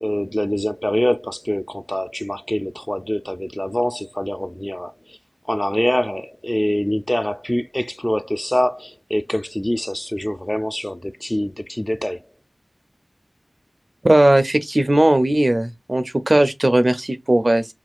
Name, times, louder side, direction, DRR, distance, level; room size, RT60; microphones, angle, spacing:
voice 1, 0.0-5.2 5.5-12.3, left 1 dB, 15° left, 0.4 m, -24 dB
voice 2, 14.0-17.7, right 1 dB, 40° right, 0.5 m, -17 dB
5.8 x 2.4 x 2.4 m
wide cardioid pair, 60°, 0 cm